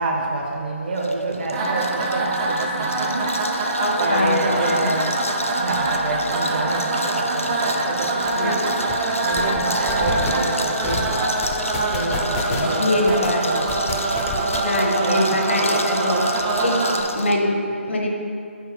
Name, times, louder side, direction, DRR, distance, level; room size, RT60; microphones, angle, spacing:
voice 1, 0.0-3.7 4.0-5.2 5.5-8.6 9.0-11.3 11.9-13.8 14.7-15.5, right 2 dB, 45° right, -1 dB, 1.0 m, -28 dB
sound 1, 1.0-17.4, left 2 dB, 85° left, 0.4 m, -34 dB
sound 2, 1.5-17.0, right 2 dB, 25° right, 0.5 m, -24 dB
voice 2, 3.8-4.9 8.4-8.6 12.6-13.5 14.6-16.2 16.6-16.8 17.1-18.1, left 1 dB, 65° left, 1 dB, 0.9 m, -23 dB
sound 3, 8.3-8.4 8.7-8.9 9.3-9.6 9.9-10.3 10.8-11.1 11.4-12.7 13.1-13.3 13.7-14.8, left 4 dB, 20° left, 0.6 m, -28 dB
4.7 x 4.5 x 4.8 m, 2.3 s
figure-of-eight pair, 145°, 7 cm